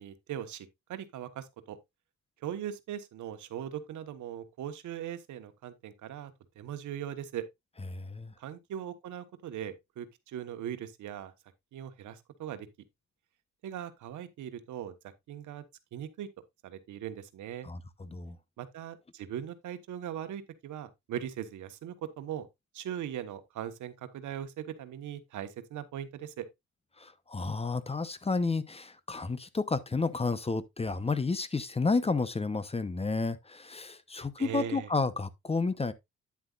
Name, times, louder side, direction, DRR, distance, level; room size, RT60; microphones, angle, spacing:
voice 1, 0.0-1.8 2.4-7.4 8.4-11.3 11.7-12.7 13.6-14.9 15.3-15.6 15.9-16.3 16.6-17.7 18.6-22.5 22.7-26.5 34.4-34.9, right 10 dB, 75° right, 1.2 m, -40 dB
voice 2, 7.9-8.3 17.6-18.4 27.0-35.9, left 3 dB, 20° left, 0.8 m, -31 dB
9.7 x 7.7 x 2.4 m
cardioid pair, 90°, 30 cm